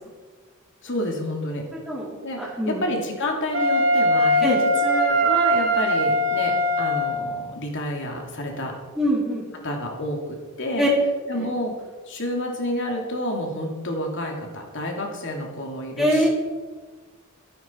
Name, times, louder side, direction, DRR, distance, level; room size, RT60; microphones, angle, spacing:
voice 1, 0.8-1.6 2.2-8.7 9.6-10.9 11.3-16.3, left 1 dB, 60° left, 1 dB, 2.9 m, -29 dB
voice 2, 2.4-2.8 4.4-4.6 8.9-9.4 10.8-10.9 11.3-11.5 16.0-16.3, equal, ahead, -6 dB, 3.2 m, -23 dB
Wind instrument woodwind instrument, 3.5-7.3, equal, 70° right, 3.3 m, -21 dB
14.5 x 12.0 x 4.6 m, 1.4 s
head